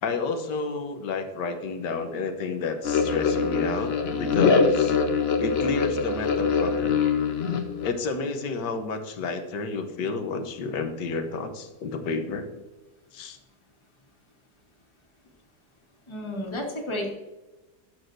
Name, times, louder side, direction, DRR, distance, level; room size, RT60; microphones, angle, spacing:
voice 1, 0.0-5.0 5.4-7.0 7.8-12.6 13.1-13.4, left 4 dB, 90° left, 6 dB, 1.5 m, -30 dB
sound 1, 2.8-7.9, left 5 dB, 50° left, 0.9 m, -23 dB
voice 2, 16.1-17.1, left 1 dB, 20° left, 0 dB, 1.4 m, -31 dB
12.5 x 6.3 x 2.6 m, 1.1 s
omnidirectional pair, 1.8 m